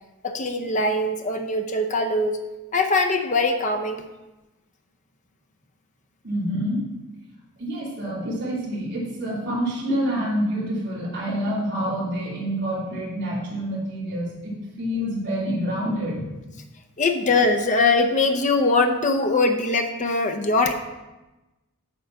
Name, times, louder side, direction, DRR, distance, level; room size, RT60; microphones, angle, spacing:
voice 1, 0.2-2.4 2.7-4.1 17.0-20.7, left 3 dB, 35° left, 5 dB, 0.6 m, -22 dB
voice 2, 6.2-6.8 7.6-16.3, equal, 50° right, -8 dB, 3.0 m, -27 dB
8.8 x 4.0 x 5.7 m, 1.1 s
head